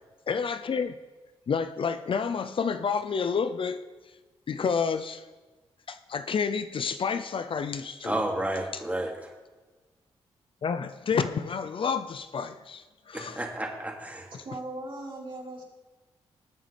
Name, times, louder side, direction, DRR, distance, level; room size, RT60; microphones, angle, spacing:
voice 1, 0.3-0.9 1.5-3.8 4.5-5.2 5.9-8.1 10.6-13.4, left 6 dB, 55° left, 10 dB, 0.7 m, -29 dB
voice 2, 8.0-9.3 13.1-14.3, right 1 dB, 15° right, 0 dB, 2.8 m, -31 dB
voice 3, 14.3-15.6, right 2 dB, 55° right, -4 dB, 4.5 m, -38 dB
20.0 x 7.4 x 3.5 m, 1.2 s
supercardioid pair, 45°, 11 cm